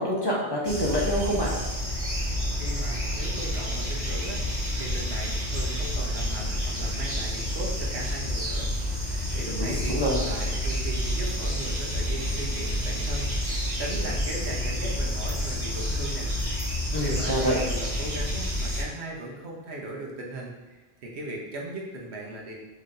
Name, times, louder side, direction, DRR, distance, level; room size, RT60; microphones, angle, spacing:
voice 1, 0.0-1.5 9.4-10.2 16.9-17.6, equal, 25° left, -5 dB, 0.8 m, -26 dB
sound 1, 0.6-18.8, equal, 45° right, 1.0 m, -29 dB
voice 2, 2.6-4.4 4.7-8.7 9.0-16.3 17.0-22.6, right 1 dB, 85° right, -2 dB, 1.2 m, -38 dB
5.4 x 3.2 x 2.6 m, 1.2 s
omnidirectional pair, 1.1 m